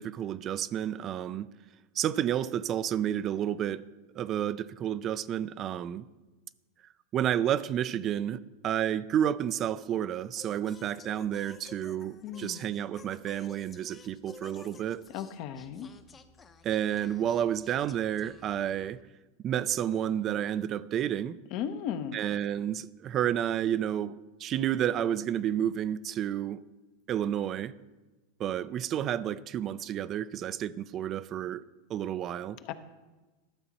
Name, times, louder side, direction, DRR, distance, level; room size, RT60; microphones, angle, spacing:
voice 1, 0.0-1.5 2.0-3.9 4.2-6.0 7.1-15.0 16.6-19.0 19.4-21.4 22.1-26.6 27.1-27.7 28.4-31.6 31.9-32.6, right 10 dB, 35° right, 0.4 m, -30 dB
Singing, 10.3-19.0, left 5 dB, 25° left, 0.7 m, -54 dB
voice 2, 12.2-12.6 15.1-15.9 21.5-22.2 32.6-32.7, left 9 dB, 55° left, 0.8 m, -36 dB
12.0 x 7.1 x 4.2 m
hypercardioid pair, 115°, 0 cm